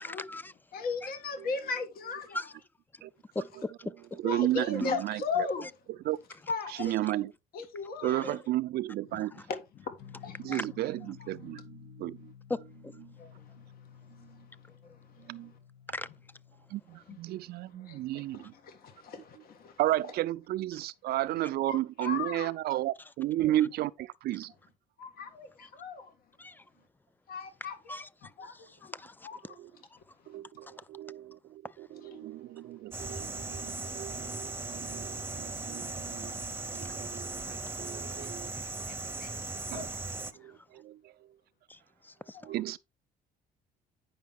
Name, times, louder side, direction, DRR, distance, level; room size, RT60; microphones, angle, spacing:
voice 1, 0.0-0.5 2.3-2.5 3.4-3.7 4.1-4.2 4.8-4.9 8.0-8.1 10.5-10.7 12.5-12.9 15.9-16.1 25.6-25.7 26.4-26.6 27.9-28.1 28.5-29.3 41.7-41.8 42.0-42.4, left 2 dB, 10° left, 0.4 m, -38 dB
voice 2, 0.7-2.5 4.2-5.7 6.5-6.9 7.5-8.4 9.1-9.2 9.5-10.6 13.2-13.5 14.2-14.3 14.7-15.3 17.1-17.2 17.7-19.8 21.7-22.5 23.4-23.5 25.0-26.1 27.3-28.5 28.8-28.9 29.2-29.6 32.0-32.3 38.2-39.3 39.7-40.0 42.3-42.5, left 5 dB, 60° left, 1.6 m, -38 dB
voice 3, 4.2-5.5 6.0-6.2 6.7-7.3 8.0-9.3 10.4-12.3 13.0-13.1 14.2-14.4 15.2-15.5 16.7-18.5 19.8-24.5 29.5-29.7 30.3-39.9 40.3-41.2 42.4-42.8, right 15 dB, 70° right, 0.5 m, -33 dB
sound 1, 10.0-16.8, left 8 dB, 90° left, 1.4 m, -52 dB
sound 2, 32.9-40.3, right 3 dB, 15° right, 0.8 m, -38 dB
9.4 x 5.6 x 3.5 m
cardioid pair, 110°, 17 cm